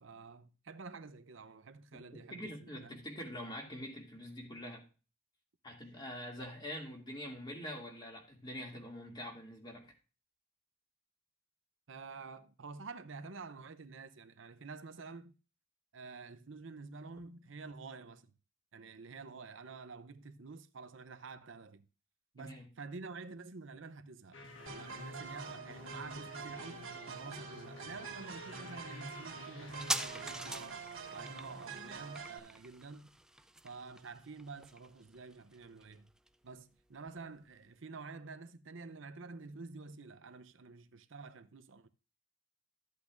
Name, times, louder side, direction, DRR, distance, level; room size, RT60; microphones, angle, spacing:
voice 1, 0.0-3.0 11.9-15.4 15.9-18.3 18.7-21.9 22.3-30.8 31.1-33.1 33.6-36.1 36.4-41.9, right 4 dB, 65° right, 0.7 m, -49 dB
voice 2, 1.9-4.8 5.6-9.9 22.4-22.7, equal, 20° left, 2.5 m, -45 dB
sound 1, 24.3-30.5, left 2 dB, 65° left, 1.5 m, -52 dB
sound 2, 24.7-32.4, right 5 dB, 85° right, 2.1 m, -46 dB
sound 3, 29.7-36.8 37.1-37.2, right 1 dB, 5° right, 0.4 m, -43 dB
13.5 x 8.4 x 2.6 m
head